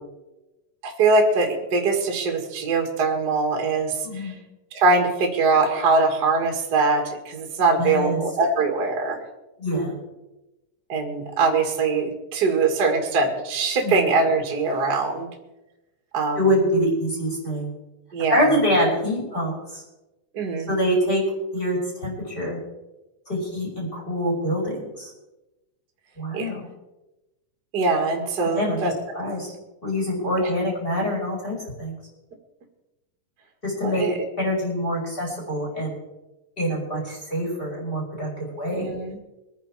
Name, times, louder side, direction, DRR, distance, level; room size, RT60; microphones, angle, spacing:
voice 1, 0.8-4.3 4.7-9.2 10.9-15.3 16.1-16.4 18.1-18.4 20.3-20.7 26.3-26.5 27.7-28.9 30.4-30.5 33.8-34.2 38.7-39.2, right 3 dB, 35° right, 3 dB, 2.1 m, -22 dB
voice 2, 4.0-4.4 7.8-8.2 9.6-9.9 13.8-14.0 16.3-17.7 18.3-19.8 20.7-21.2 21.5-22.6 23.3-25.1 26.2-26.7 28.4-29.5 29.8-32.0 33.6-34.1 34.4-36.0 36.6-38.9, equal, 15° left, -3 dB, 5.9 m, -25 dB
23.0 x 10.0 x 4.8 m, 1.0 s
omnidirectional pair, 3.9 m